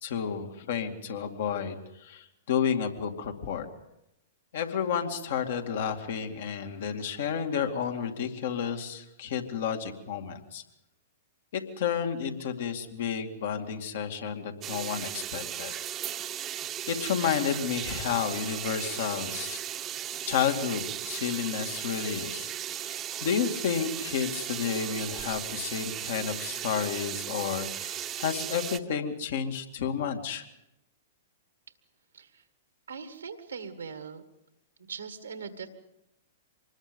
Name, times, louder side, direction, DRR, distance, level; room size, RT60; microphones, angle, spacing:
voice 1, 0.0-3.7 4.5-10.6 11.5-15.7 16.9-19.6 20.3-30.4, left 7 dB, 65° left, 5 dB, 2.3 m, -31 dB
sound 1, 14.6-28.8, right 11 dB, 30° right, 1.0 m, -36 dB
voice 2, 32.1-32.4 32.9-34.2 34.9-35.7, right 6 dB, 85° right, 8 dB, 1.8 m, -40 dB
25.5 x 20.5 x 5.3 m, 0.88 s
hypercardioid pair, 115°, 0 cm